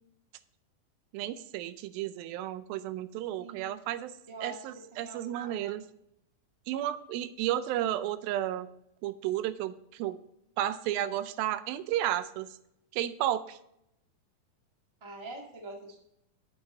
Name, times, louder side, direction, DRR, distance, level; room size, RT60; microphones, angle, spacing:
voice 1, 1.1-4.1 4.4-5.8 6.7-8.7 9.0-10.2 10.6-12.5 12.9-13.6, right 12 dB, 85° right, 13 dB, 2.5 m, -32 dB
voice 2, 3.4-3.7 4.3-4.6 4.9-5.7 15.0-16.0, right 2 dB, 45° right, 0 dB, 0.3 m, -44 dB
8.2 x 8.1 x 4.2 m, 0.80 s
omnidirectional pair, 4.1 m